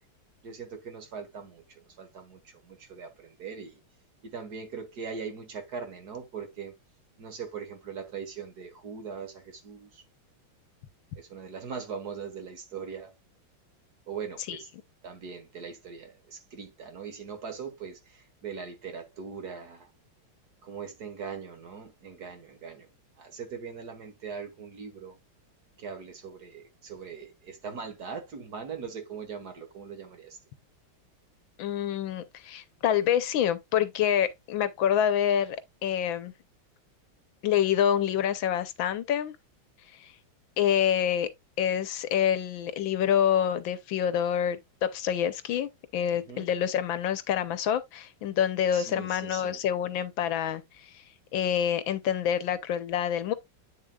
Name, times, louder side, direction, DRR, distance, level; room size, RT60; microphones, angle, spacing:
voice 1, 0.4-3.8 4.2-6.7 7.2-10.0 11.1-13.1 14.1-14.7 15.0-19.9 20.6-22.9 23.2-25.2 25.8-30.4 46.1-46.5 48.7-49.6, right 6 dB, 50° right, 1.8 m, -40 dB
voice 2, 31.6-35.6 35.8-36.3 37.4-39.4 40.0-40.1 40.6-41.3 41.6-51.0 51.3-53.3, left 9 dB, 70° left, 1.4 m, -27 dB
8.6 x 6.7 x 2.3 m
omnidirectional pair, 2.3 m